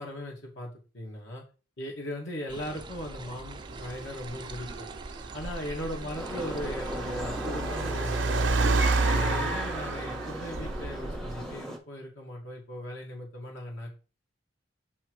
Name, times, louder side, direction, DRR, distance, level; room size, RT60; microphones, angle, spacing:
voice 1, 0.0-1.4 1.8-4.9 5.3-8.7 9.1-13.9, left 1 dB, 80° left, -1 dB, 2.2 m, -38 dB
sound 1, 2.5-7.9, right 2 dB, 25° right, 0.6 m, -42 dB
Car, 3.6-11.5, right 3 dB, 75° right, 0.6 m, -30 dB
sound 2, 6.2-11.8, equal, ahead, 1.4 m, -36 dB
8.4 x 3.3 x 4.8 m, 0.34 s
head